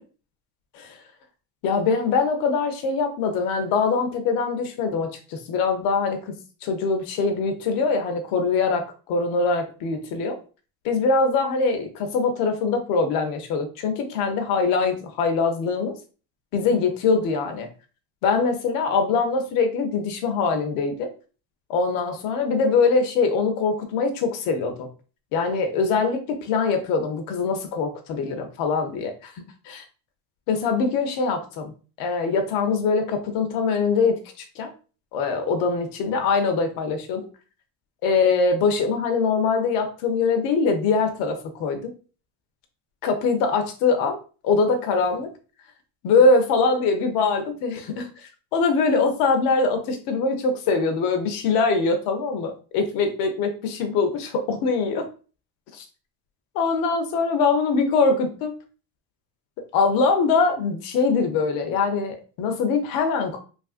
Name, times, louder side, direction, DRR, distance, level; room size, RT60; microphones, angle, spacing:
voice 1, 1.6-10.4 10.8-15.9 16.5-17.7 18.2-21.1 21.7-24.9 25.3-29.3 29.7-29.8 30.5-31.7 32.0-34.2 34.6-34.7 35.1-37.3 38.0-41.9 43.0-44.2 44.4-45.3 46.0-55.1 55.7-55.8 56.5-58.5 59.7-63.4, left 4 dB, 50° left, 5 dB, 0.6 m, -23 dB
3.1 x 2.5 x 2.4 m, 0.37 s
cardioid pair, 170°, 44 cm